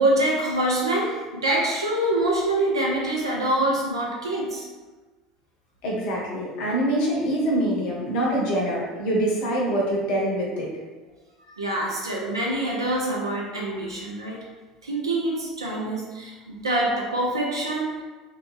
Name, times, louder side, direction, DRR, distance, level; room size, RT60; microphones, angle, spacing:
voice 1, 0.0-4.7 11.6-14.5 14.8-18.0, right 1 dB, 80° right, -3 dB, 0.4 m, -25 dB
voice 2, 5.8-10.7, right 1 dB, 50° left, -3 dB, 0.7 m, -24 dB
2.5 x 2.2 x 3.2 m, 1.3 s
figure-of-eight pair, 70°, 2 cm